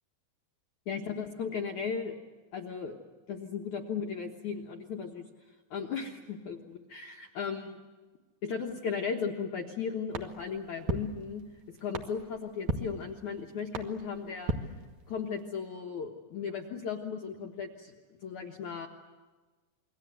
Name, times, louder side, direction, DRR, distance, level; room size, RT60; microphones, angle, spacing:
voice 1, 0.9-2.1 2.5-3.0 3.3-5.2 5.7-7.8 8.4-14.7 15.1-17.9 18.2-18.9, left 6 dB, 65° left, 1 dB, 1.9 m, -36 dB
sound 1, 10.1-15.4, right 4 dB, 60° right, 2.1 m, -38 dB
28.0 x 22.5 x 8.0 m, 1.3 s
omnidirectional pair, 5.3 m